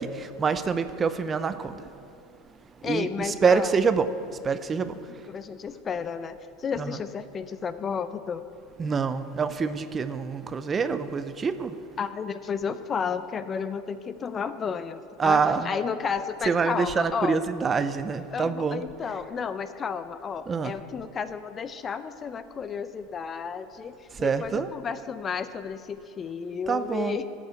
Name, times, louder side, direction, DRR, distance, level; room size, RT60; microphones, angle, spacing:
voice 1, 0.0-1.9 2.8-5.1 6.8-7.0 8.8-11.8 15.2-15.7 16.5-18.8 20.5-20.7 24.1-24.7 26.7-27.2, right 5 dB, 25° right, 12 dB, 0.6 m, -26 dB
voice 2, 2.8-3.7 4.9-5.0 5.3-8.4 12.0-17.4 18.3-27.2, left 6 dB, 25° left, 12 dB, 0.6 m, -32 dB
13.5 x 7.4 x 8.2 m, 2.5 s
supercardioid pair, 125°, 0 cm